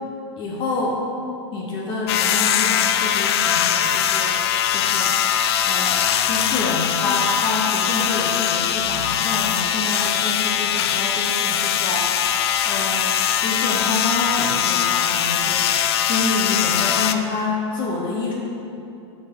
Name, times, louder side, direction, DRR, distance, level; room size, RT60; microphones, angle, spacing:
voice 1, 0.4-1.0 1.5-5.2 5.6-18.3, left 3 dB, 30° left, -1 dB, 0.9 m, -28 dB
sound 1, 2.1-17.2, left 9 dB, 60° left, 0.4 m, -21 dB
11.0 x 4.7 x 3.6 m, 2.7 s
hypercardioid pair, 120°, 15 cm